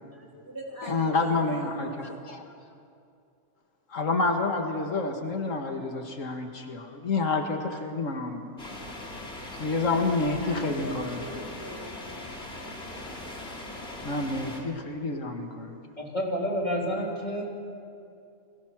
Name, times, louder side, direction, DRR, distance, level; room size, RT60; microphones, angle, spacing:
voice 1, 0.1-2.0 10.4-12.3, equal, 15° right, -2 dB, 3.7 m, -42 dB
voice 2, 0.8-2.4 3.9-8.4 9.6-11.4 14.0-15.8, left 3 dB, 80° left, 3 dB, 2.1 m, -29 dB
sound 1, 8.6-14.6, left 1 dB, 55° left, 3.3 m, -40 dB
voice 3, 16.0-17.4, equal, 35° left, -2 dB, 4.0 m, -29 dB
29.5 x 21.5 x 6.1 m, 2.5 s
omnidirectional pair, 1.3 m